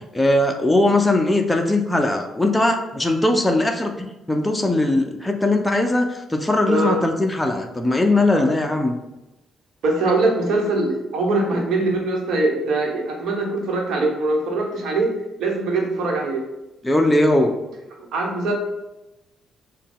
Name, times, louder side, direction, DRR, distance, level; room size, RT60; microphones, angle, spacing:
voice 1, 0.0-9.0 16.8-17.6, left 2 dB, 10° left, 3 dB, 0.5 m, -20 dB
voice 2, 6.7-7.0 8.3-8.5 9.8-15.1 15.4-16.4 18.0-18.5, right 2 dB, 75° right, 0 dB, 1.1 m, -22 dB
6.3 x 2.3 x 3.7 m, 0.97 s
cardioid pair, 90°, 0 cm